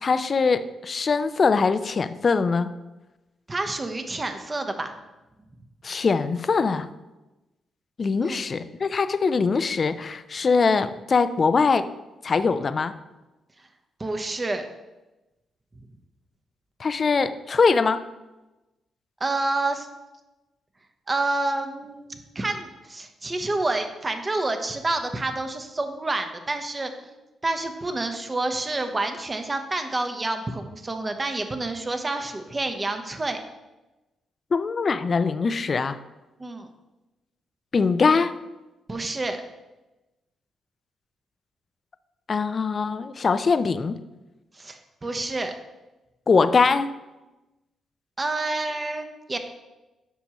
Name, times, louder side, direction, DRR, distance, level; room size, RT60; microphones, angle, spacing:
voice 1, 0.0-2.7 5.8-6.9 8.0-11.9 12.2-12.9 16.8-18.0 34.5-36.0 37.7-38.3 42.3-44.0 46.3-46.9, left 4 dB, 45° left, 12 dB, 0.5 m, -22 dB
voice 2, 3.5-4.9 8.2-8.4 14.0-14.6 19.2-19.9 21.1-27.1 27.4-33.4 36.4-36.7 38.9-39.4 44.5-45.5 48.2-49.4, right 2 dB, 30° right, 6 dB, 1.0 m, -28 dB
9.3 x 5.6 x 3.0 m, 1.0 s
supercardioid pair, 50°, 0 cm